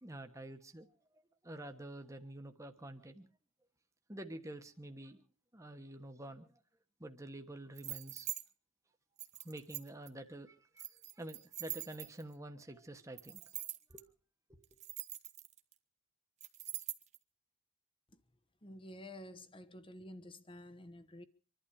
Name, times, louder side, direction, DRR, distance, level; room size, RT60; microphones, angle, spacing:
voice 1, 0.0-3.3 4.1-5.2 5.5-6.6 7.0-8.3 9.4-10.9 11.1-13.6 13.9-14.0 14.5-14.6, right 1 dB, 15° right, 1.3 m, -48 dB
sound 1, 7.8-8.4 9.2-10.1 10.8-12.3 13.2-14.0 14.6-15.7 16.4-17.2, right 13 dB, 30° right, 0.9 m, -44 dB
voice 2, 18.6-21.2, left 1 dB, 25° left, 1.1 m, -51 dB
25.5 x 11.5 x 4.8 m
head